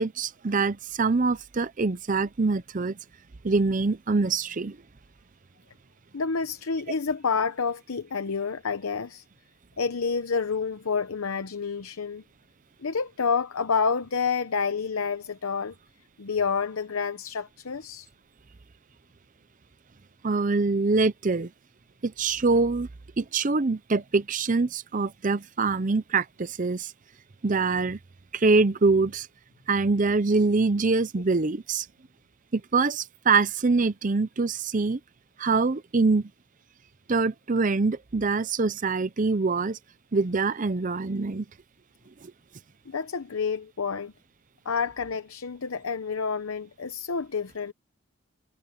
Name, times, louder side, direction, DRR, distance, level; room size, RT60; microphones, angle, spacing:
voice 1, 0.0-3.0 3.4-4.8 20.2-21.5 22.0-22.9 23.2-26.9 27.4-28.0 28.3-29.3 29.7-31.9 32.5-35.0 35.4-36.3 37.1-39.8 40.1-41.5, right 3 dB, 40° right, 0.6 m, -24 dB
voice 2, 6.1-9.2 9.8-12.2 12.8-15.7 16.2-18.1 42.9-44.1 44.6-47.7, left 5 dB, 85° left, 0.8 m, -29 dB
head